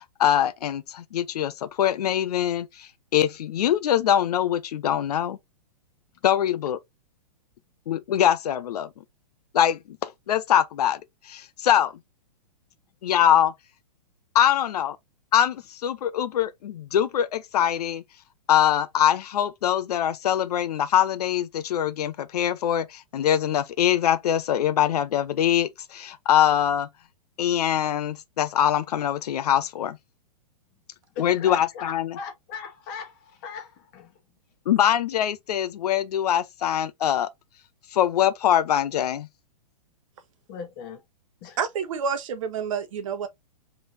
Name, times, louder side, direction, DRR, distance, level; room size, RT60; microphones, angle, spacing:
voice 1, 0.2-5.4 6.2-6.8 7.9-8.9 9.5-11.0 11.3-11.9 13.0-13.5 14.3-15.0 15.3-18.0 18.5-26.9 27.4-30.0 31.2-32.2 34.7-37.3 37.9-39.3, left 10 dB, 70° left, 0.6 m, -23 dB
voice 2, 31.1-34.1 40.5-41.0 41.4-41.6, left 6 dB, 30° left, 1.3 m, -39 dB
voice 3, 41.6-43.3, right 6 dB, 55° right, 0.9 m, -28 dB
3.7 x 3.2 x 2.6 m
hypercardioid pair, 165°, 21 cm